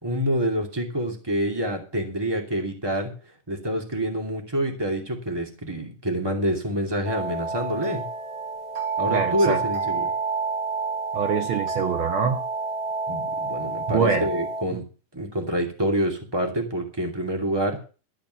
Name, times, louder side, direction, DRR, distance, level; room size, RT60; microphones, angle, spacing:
voice 1, 0.0-3.1 3.5-8.0 9.0-10.1 13.1-14.8 15.1-17.8, equal, 10° right, 2 dB, 2.0 m, -27 dB
sound 1, 7.0-14.6, right 4 dB, 50° right, 2.6 m, -29 dB
voice 2, 9.1-9.6 11.1-12.4 13.9-14.3 14.7-14.8, right 6 dB, 80° right, 6 dB, 1.1 m, -24 dB
13.5 x 5.1 x 9.1 m, 0.36 s
omnidirectional pair, 3.8 m